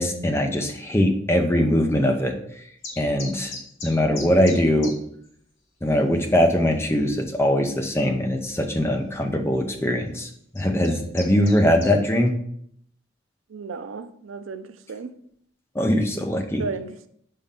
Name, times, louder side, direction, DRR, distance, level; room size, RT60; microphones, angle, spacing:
voice 1, 0.0-2.3 3.0-3.6 3.8-4.9 5.8-10.3 10.5-12.3 15.7-16.6, equal, 10° left, 4 dB, 0.6 m, -21 dB
sound 1, 2.8-4.9 5.2-5.3 5.9-6.0 6.2-6.6 7.2-7.3 8.7-8.8 9.6-9.8 10.3-11.9, left 3 dB, 65° left, 1.4 m, -38 dB
voice 2, 13.5-15.1 16.6-17.1, right 4 dB, 80° right, 11 dB, 0.5 m, -34 dB
5.1 x 3.7 x 5.6 m, 0.68 s
head